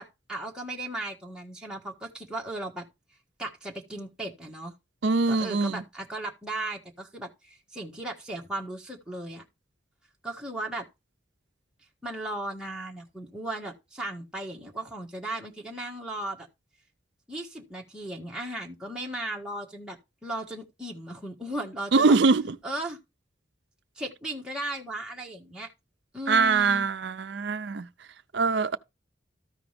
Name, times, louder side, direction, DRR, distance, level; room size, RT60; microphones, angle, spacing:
voice 1, 0.0-2.8 3.4-4.7 5.3-9.4 10.2-10.8 12.0-16.5 17.3-22.2 22.6-23.0 24.0-25.7 26.1-26.8, right 1 dB, 5° right, 1.6 m, -36 dB
voice 2, 5.0-5.8 21.9-22.6 26.3-27.9 28.3-28.8, right 4 dB, 65° right, 0.5 m, -23 dB
14.0 x 4.9 x 3.4 m
head